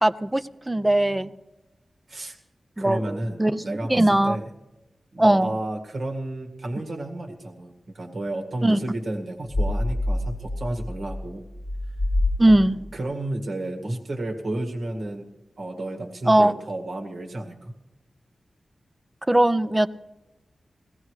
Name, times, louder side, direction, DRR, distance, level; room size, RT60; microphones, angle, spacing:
voice 1, 0.0-1.3 2.8-4.4 5.2-5.5 8.6-8.8 12.4-12.8 16.3-16.6 19.3-19.9, right 1 dB, 15° right, 14 dB, 0.5 m, -20 dB
voice 2, 2.8-4.4 5.1-11.5 12.5-12.6 12.9-15.3 15.6-17.7, right 1 dB, 60° right, 2 dB, 1.9 m, -31 dB
sound 1, 9.5-12.9, left 1 dB, 20° left, 1.1 m, -27 dB
21.5 x 16.5 x 3.2 m, 1.0 s
wide cardioid pair, 135°, 0 cm